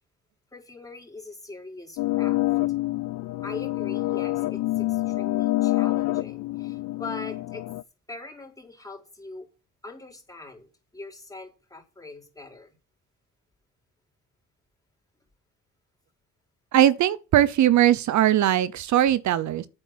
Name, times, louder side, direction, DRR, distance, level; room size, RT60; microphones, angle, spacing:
voice 1, 0.5-2.4 3.4-7.6 8.1-9.5 9.8-12.7, left 3 dB, 10° left, 4.4 m, -42 dB
sound 1, 2.0-7.8, left 18 dB, 85° left, 0.5 m, -26 dB
voice 2, 16.7-19.7, right 12 dB, 70° right, 0.8 m, -20 dB
9.0 x 7.9 x 7.5 m
cardioid pair, 90°, 30 cm